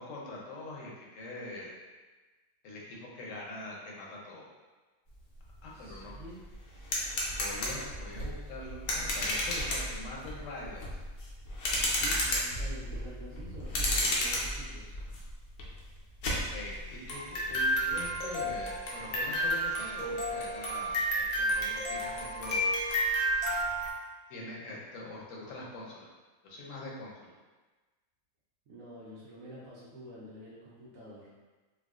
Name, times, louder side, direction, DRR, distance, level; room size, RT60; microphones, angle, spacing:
voice 1, 0.0-1.7 2.6-4.5 5.6-6.1 7.3-11.0 16.3-22.7 24.3-26.1 26.4-27.3, left 2 dB, 65° left, -3 dB, 1.0 m, -43 dB
sound 1, 5.5-5.6 5.9-23.9, equal, 85° left, 1.2 m, -32 dB
voice 2, 5.7-6.4 11.9-15.0 28.7-31.3, right 1 dB, 70° right, -8 dB, 1.1 m, -48 dB
4.6 x 2.1 x 2.4 m, 1.2 s
omnidirectional pair, 1.5 m